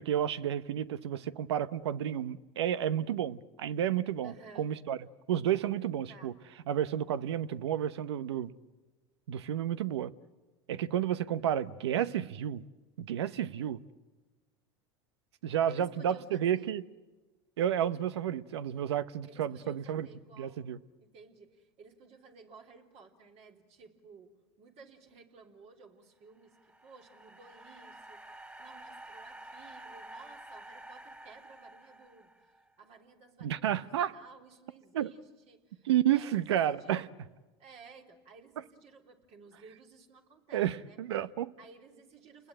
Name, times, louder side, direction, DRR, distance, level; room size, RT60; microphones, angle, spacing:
voice 1, 0.0-4.3 4.6-5.0 5.3-6.3 6.7-8.5 9.3-10.1 10.7-12.6 13.0-13.8 15.4-16.8 17.6-20.1 20.4-20.8 33.4-34.2 34.9-35.1 35.8-37.1 40.5-41.5, right 10 dB, 90° right, 0.8 m, -31 dB
voice 2, 4.2-4.7 6.1-6.4 15.7-16.7 19.3-20.7 21.0-24.3 24.6-37.1 37.6-41.0 41.6-42.5, right 4 dB, 50° right, 3.5 m, -55 dB
sound 1, 26.3-32.7, right 1 dB, 15° right, 2.8 m, -50 dB
29.5 x 20.5 x 8.9 m
hypercardioid pair, 90°, 14 cm